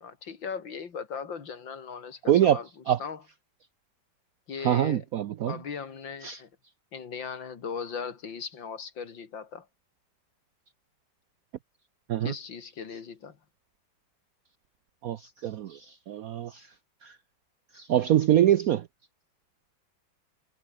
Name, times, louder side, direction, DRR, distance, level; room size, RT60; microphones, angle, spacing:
voice 1, 0.0-3.2 4.5-5.0 5.5-6.5 6.9-9.7 12.2-13.4, left 6 dB, 70° left, 3.0 m, -38 dB
voice 2, 2.3-2.6 2.9-3.0 4.6-5.5 6.2-6.4 12.1-12.3 15.0-16.7 17.0-17.1 17.7-18.8, right 11 dB, 70° right, 0.8 m, -24 dB
omnidirectional pair, 2.2 m